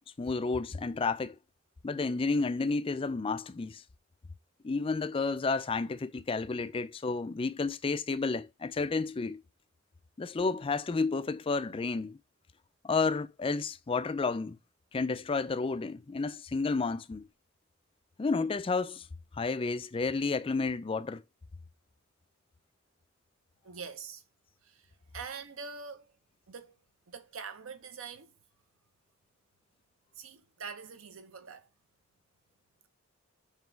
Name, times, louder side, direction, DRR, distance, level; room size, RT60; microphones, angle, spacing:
voice 1, 0.2-1.4 1.8-3.8 4.6-9.4 10.2-12.2 12.8-14.6 14.9-17.3 18.2-19.1 19.3-21.2, left 4 dB, 25° left, 0.4 m, -31 dB
voice 2, 23.6-24.2 25.1-26.1 26.5-26.8 27.1-28.3 30.2-31.7, right 5 dB, 85° right, 0.8 m, -44 dB
7.4 x 3.0 x 4.5 m
head